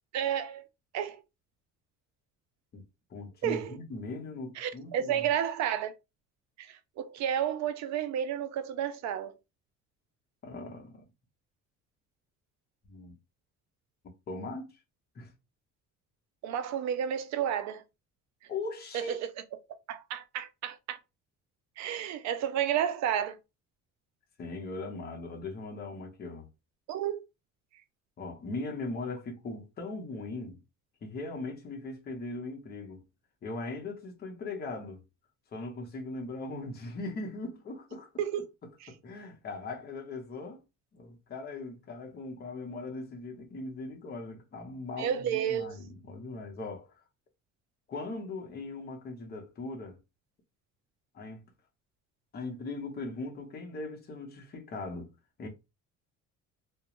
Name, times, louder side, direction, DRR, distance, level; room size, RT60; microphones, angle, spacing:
voice 1, 0.1-0.6 0.9-1.2 3.4-3.8 4.6-5.9 6.7-9.3 16.4-17.8 18.9-19.2 19.9-21.0 21.8-23.4 26.9-27.2 38.2-38.4 45.0-45.7, right 9 dB, 65° right, 0.4 m, -31 dB
voice 2, 3.1-5.3 10.4-11.0 12.9-13.1 14.3-14.7 15.1-15.3 18.5-19.2 24.4-26.5 28.2-30.6 31.0-33.0 33.4-35.0 35.5-38.1 38.6-40.6 40.9-46.9 47.9-50.0 51.1-51.4 52.3-55.1 55.4-55.5, left 3 dB, 30° left, 0.7 m, -39 dB
2.4 x 2.1 x 2.9 m
cardioid pair, 145°, 30 cm